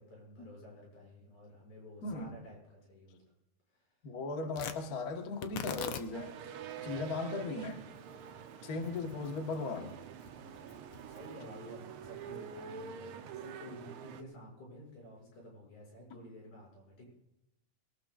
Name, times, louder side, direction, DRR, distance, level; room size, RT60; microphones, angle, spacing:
voice 1, 0.0-3.2 3.7-3.9 6.8-6.9 10.4-17.0, left 1 dB, 85° left, -2 dB, 8.3 m, -52 dB
voice 2, 2.0-2.3 4.0-6.4 6.8-7.8 8.6-9.9, left 3 dB, 45° left, 5 dB, 1.3 m, -37 dB
Tearing, 4.5-12.9, left 8 dB, 65° left, 1.7 m, -47 dB
sound 1, 6.1-14.2, right 8 dB, 80° right, 1.2 m, -47 dB
22.0 x 18.5 x 2.5 m, 0.89 s
omnidirectional pair, 3.4 m